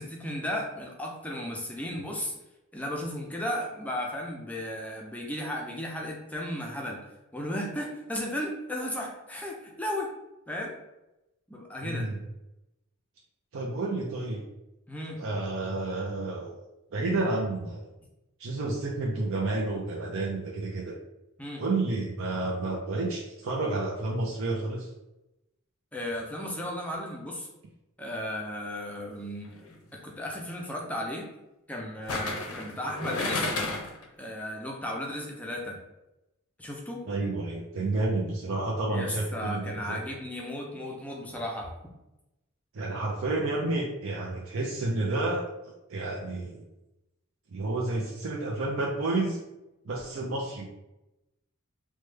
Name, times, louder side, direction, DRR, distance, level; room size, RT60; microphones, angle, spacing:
voice 1, 0.0-2.3 2.7-7.0 7.3-10.1 10.5-10.8 11.5-12.1 14.9-15.2 21.4-21.6 25.9-27.5 28.0-29.5 29.9-31.3 31.7-33.5 34.2-35.8 36.6-37.0 38.9-41.7, left 1 dB, 5° left, 0 dB, 0.4 m, -35 dB
voice 2, 11.8-12.2 13.5-14.4 15.2-16.6 16.9-17.9 18.4-21.0 21.6-24.9 37.1-40.0 42.7-46.6 47.5-49.4 49.9-50.7, right 2 dB, 70° right, -2 dB, 0.5 m, -30 dB
sound 1, 29.4-29.7 32.1-34.0 34.4-34.5, left 2 dB, 90° left, 0.5 m, -32 dB
3.1 x 2.2 x 3.2 m, 0.95 s
head